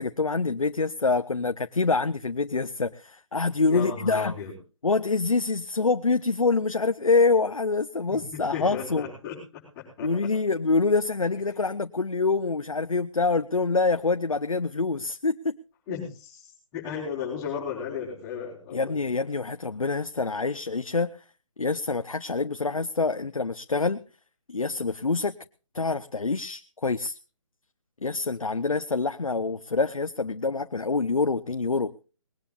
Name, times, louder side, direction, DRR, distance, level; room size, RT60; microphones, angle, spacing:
voice 1, 0.0-4.3 4.8-9.0 10.0-15.6 18.7-21.2 21.6-24.0 24.5-25.3 25.7-27.2 28.0-31.9, left 4 dB, 90° left, 10 dB, 0.8 m, -26 dB
voice 2, 3.6-4.5 8.1-9.4 9.8-10.3 15.9-19.0, left 7 dB, 20° left, -6 dB, 5.3 m, -35 dB
20.5 x 18.0 x 2.5 m, 0.35 s
figure-of-eight pair, 145°, 17 cm